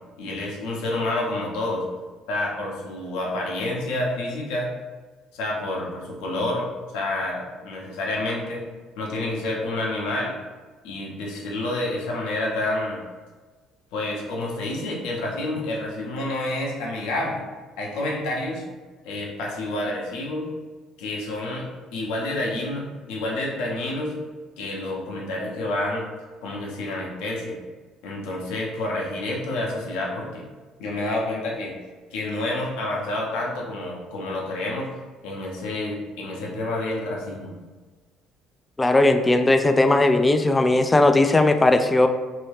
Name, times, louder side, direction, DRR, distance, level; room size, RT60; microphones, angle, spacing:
voice 1, 0.2-1.9 2.3-4.7 5.3-8.7 9.0-10.4 10.8-13.0 13.9-17.4 17.8-18.6 19.0-20.5 21.0-24.2 24.6-26.1 26.4-27.6 28.0-30.5 30.8-31.7 32.1-34.9 35.2-37.5, left 2 dB, 75° left, -2 dB, 0.8 m, -29 dB
voice 2, 38.8-42.1, left 2 dB, 20° left, 7 dB, 0.3 m, -18 dB
3.0 x 2.8 x 3.2 m, 1.3 s
hypercardioid pair, 65°, 0 cm